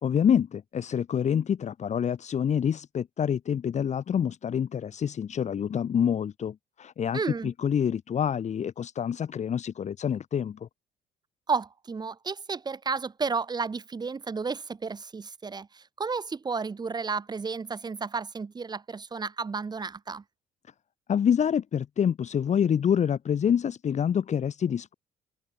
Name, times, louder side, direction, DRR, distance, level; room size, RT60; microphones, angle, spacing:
voice 1, 0.0-10.7 21.1-24.9, left 8 dB, 45° left, 2.1 m, -27 dB
voice 2, 7.1-7.5 11.5-20.2, right 5 dB, 25° right, 1.6 m, -32 dB
open air
cardioid pair, 110°, 17 cm